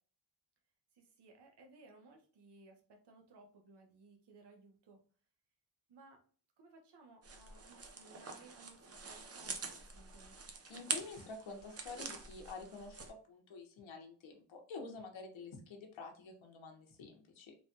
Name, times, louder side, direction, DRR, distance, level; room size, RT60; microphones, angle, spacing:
voice 1, 0.9-5.0 5.9-6.2 6.6-10.4, right 3 dB, 55° right, 2 dB, 0.9 m, -61 dB
sound 1, 7.2-13.1, right 4 dB, 30° right, 0.5 m, -45 dB
voice 2, 10.7-17.5, left 4 dB, 70° left, 1 dB, 0.8 m, -49 dB
3.3 x 2.2 x 2.7 m, 0.41 s
cardioid pair, 85°, 48 cm